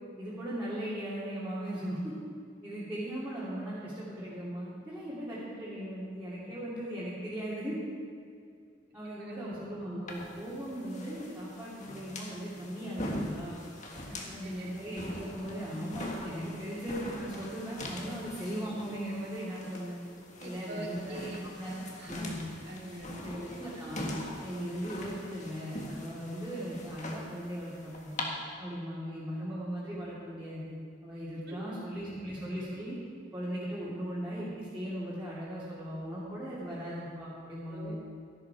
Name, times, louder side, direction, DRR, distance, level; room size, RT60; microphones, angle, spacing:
voice 1, 0.2-2.2 2.6-7.8 8.9-13.6 14.2-20.0 20.4-21.7 22.0-22.4 23.2-24.1 24.4-28.3 28.6-30.8 31.0-33.0 33.3-38.0, equal, 10° right, -10 dB, 2.5 m, -38 dB
voice 2, 9.2-9.5 14.1-14.7 20.4-21.4 21.7-22.4 22.6-23.2 24.6-24.7 31.5-31.6 37.7-38.0, right 1 dB, 55° right, -2 dB, 2.5 m, -43 dB
sound 1, 10.1-28.2, left 1 dB, 40° left, 1.6 m, -43 dB
14.0 x 11.5 x 4.7 m, 2.4 s
head